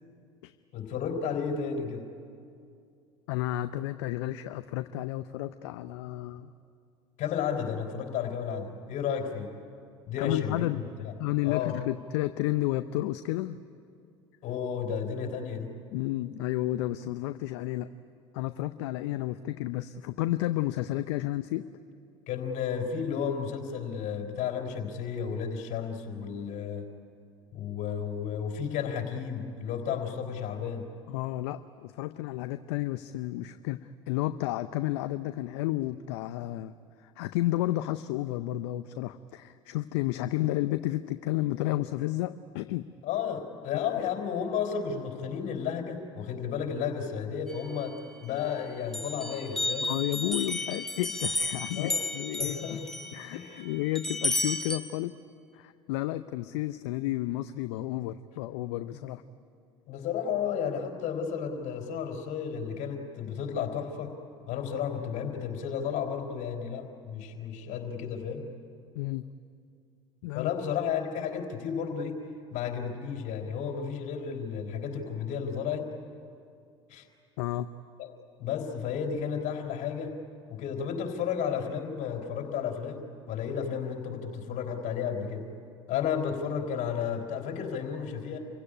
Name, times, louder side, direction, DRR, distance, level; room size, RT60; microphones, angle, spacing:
voice 1, 0.7-2.1 7.2-9.5 10.1-11.1 11.4-11.8 14.4-15.7 22.3-26.9 27.5-30.9 43.0-49.9 51.8-52.0 52.4-52.8 53.3-53.7 58.9-59.0 59.9-64.2 64.5-68.5 70.3-72.2 72.5-75.9 76.9-77.1 78.0-78.1 78.4-80.2 80.5-85.5 85.9-88.4, left 7 dB, 55° left, 4 dB, 3.9 m, -33 dB
voice 2, 3.3-6.5 10.2-10.8 11.2-13.6 15.9-17.9 18.3-21.7 31.1-36.7 37.0-42.9 49.8-52.8 53.1-55.2 55.5-59.2 68.9-69.3 70.2-70.5 77.4-77.7, left 16 dB, 70° left, 11 dB, 0.6 m, -31 dB
sound 1, 47.5-48.5 48.9-54.8, left 2 dB, 5° left, 2.0 m, -33 dB
27.0 x 16.5 x 10.0 m, 2.4 s
hypercardioid pair, 75°, 15 cm